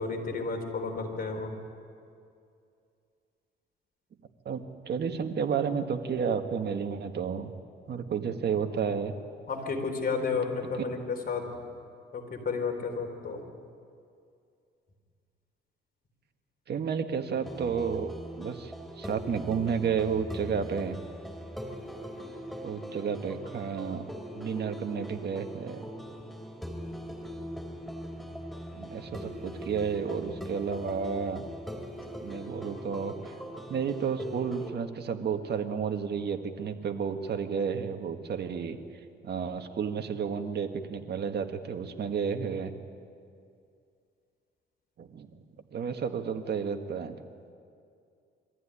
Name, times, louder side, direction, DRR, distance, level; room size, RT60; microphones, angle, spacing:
voice 1, 0.0-1.5 9.5-11.6 12.1-13.4, left 4 dB, 50° left, 3 dB, 4.2 m, -32 dB
voice 2, 4.5-7.5 7.9-9.1 10.8-10.9 16.7-21.0 22.6-25.9 28.7-31.5 32.2-33.3 33.7-38.8 39.2-42.7 45.0-45.3 45.7-47.2, right 6 dB, 55° right, 6 dB, 1.8 m, -31 dB
sound 1, 17.4-34.7, equal, ahead, 3.4 m, -41 dB
23.5 x 15.0 x 10.0 m, 2.4 s
cardioid pair, 90°, 20 cm